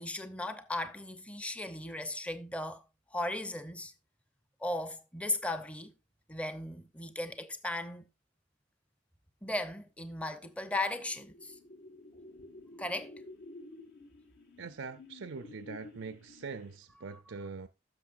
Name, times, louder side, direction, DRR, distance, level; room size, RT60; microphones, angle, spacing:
voice 1, 0.0-2.8 3.1-3.9 4.6-5.9 6.3-8.0 9.4-11.5 12.8-13.1, left 1 dB, 5° left, 0.8 m, -36 dB
sound 1, 10.4-16.9, left 2 dB, 60° left, 1.8 m, -52 dB
voice 2, 14.6-17.7, right 4 dB, 70° right, 0.6 m, -43 dB
16.0 x 6.6 x 2.5 m
head